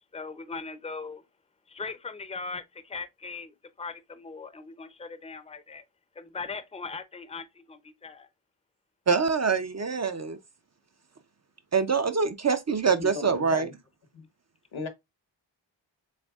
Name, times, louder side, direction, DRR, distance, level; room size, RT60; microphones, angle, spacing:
voice 1, 0.1-1.2 1.7-3.5 3.8-5.8 6.2-8.3, left 4 dB, 15° left, 0.5 m, -39 dB
voice 2, 9.1-10.4 11.7-13.7, right 5 dB, 35° right, 0.5 m, -25 dB
voice 3, 13.0-13.7 14.1-14.2 14.7-14.9, left 4 dB, 85° left, 1.1 m, -36 dB
6.5 x 3.4 x 2.3 m
wide cardioid pair, 95°, 46 cm